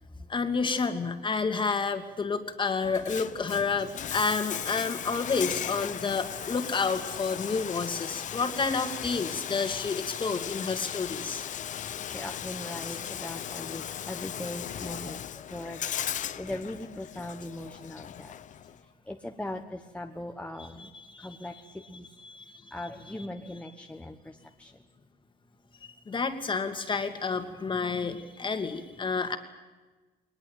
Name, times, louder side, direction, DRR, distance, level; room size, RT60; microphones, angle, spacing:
voice 1, 0.3-11.4 12.9-13.0 20.6-21.9 22.2-22.5 23.2-23.7 26.1-29.4, left 4 dB, 30° left, 7 dB, 2.4 m, -30 dB
Bathtub (filling or washing), 2.8-18.8, left 10 dB, 45° left, 0.8 m, -37 dB
voice 2, 12.0-15.8 16.4-18.3 19.1-20.9 21.2-21.5 21.9-22.0 22.7-24.7, left 1 dB, 5° left, 3 dB, 1.2 m, -39 dB
21.0 x 20.5 x 9.1 m, 1.3 s
cardioid pair, 110°, 17 cm